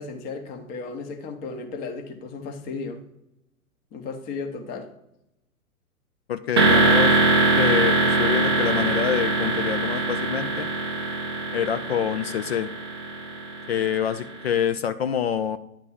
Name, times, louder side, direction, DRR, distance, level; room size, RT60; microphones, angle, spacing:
voice 1, 0.0-3.0 3.9-4.9, left 4 dB, 20° left, 6 dB, 0.8 m, -34 dB
voice 2, 6.3-10.7 11.5-12.7 13.7-15.6, left 9 dB, 50° left, 10 dB, 0.4 m, -26 dB
sound 1, 6.6-14.3, right 3 dB, 20° right, 0.3 m, -22 dB
9.9 x 3.5 x 5.6 m, 0.86 s
figure-of-eight pair, 110°, 42 cm